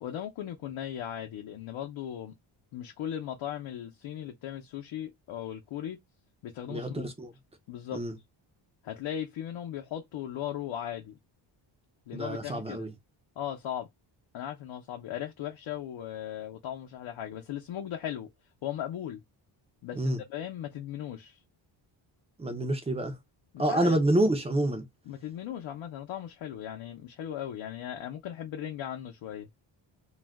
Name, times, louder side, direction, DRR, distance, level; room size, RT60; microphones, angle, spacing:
voice 1, 0.0-2.3 2.7-6.0 6.4-7.1 7.7-8.0 8.8-11.2 12.1-12.9 13.4-13.9 14.3-18.3 18.6-19.2 19.8-21.4 23.5-24.0 25.1-29.5, left 10 dB, 70° left, 0.7 m, -37 dB
voice 2, 6.7-7.3 7.9-8.1 12.1-12.9 20.0-20.2 22.4-23.2 23.6-24.8, right 1 dB, 15° right, 0.4 m, -27 dB
2.4 x 2.1 x 3.3 m
wide cardioid pair, 170°, 48 cm